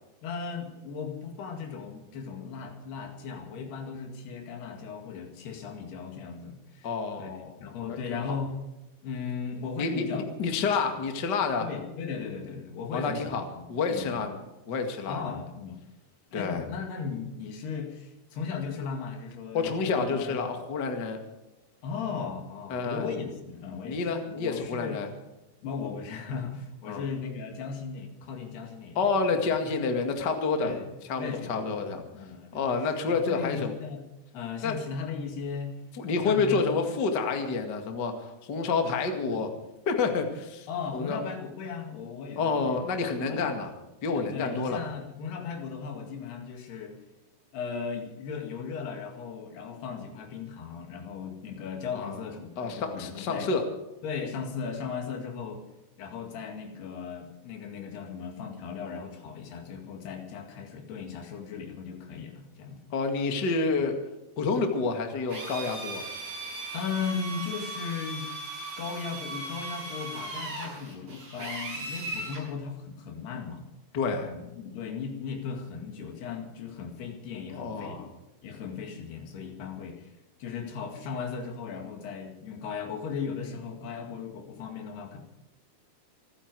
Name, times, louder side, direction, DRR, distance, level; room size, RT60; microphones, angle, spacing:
voice 1, 0.2-6.9 7.2-8.5 9.0-10.6 11.6-14.3 15.1-15.8 16.3-20.4 21.8-24.0 24.3-25.1 25.6-29.0 30.6-30.9 31.2-32.7 33.1-34.0 34.3-35.7 36.2-36.6 40.7-43.0 43.3-43.5 44.1-47.0 47.5-53.5 54.0-55.6 56.0-62.8 66.7-68.3 68.8-73.7 74.2-78.0 78.4-80.1 80.4-85.2, left 6 dB, 75° left, 4 dB, 4.1 m, -37 dB
voice 2, 6.8-7.6 7.9-8.4 9.8-11.7 12.9-13.4 13.7-14.4 14.7-15.2 16.3-16.6 19.5-21.2 22.7-23.2 23.8-25.1 26.9-27.0 29.0-30.7 31.1-32.0 32.5-33.7 34.6-34.8 36.0-39.5 39.9-41.2 42.4-43.7 44.0-44.8 51.9-52.2 52.6-53.7 62.9-64.0 64.4-66.0 73.9-74.3 77.5-78.1, left 4 dB, 35° left, 5 dB, 1.9 m, -29 dB
Drill, 65.3-72.4, right 2 dB, 55° right, 9.2 m, -38 dB
27.5 x 10.5 x 4.7 m, 1.0 s
omnidirectional pair, 4.7 m